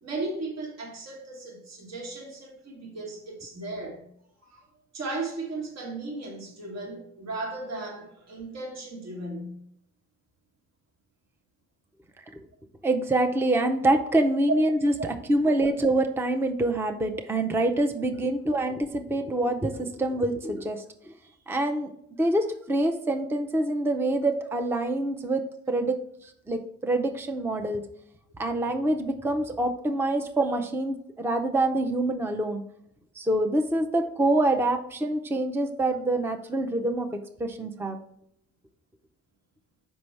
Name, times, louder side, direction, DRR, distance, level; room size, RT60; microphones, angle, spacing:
voice 1, 0.0-4.0 4.4-4.6 4.9-9.6, right 2 dB, 60° right, 1.5 m, -36 dB
voice 2, 12.8-21.1 21.5-21.9 22.2-26.0 26.5-27.9 28.4-32.6 33.2-38.0, right 1 dB, 10° right, 0.5 m, -26 dB
5.9 x 5.3 x 3.2 m
cardioid pair, 90°, 30 cm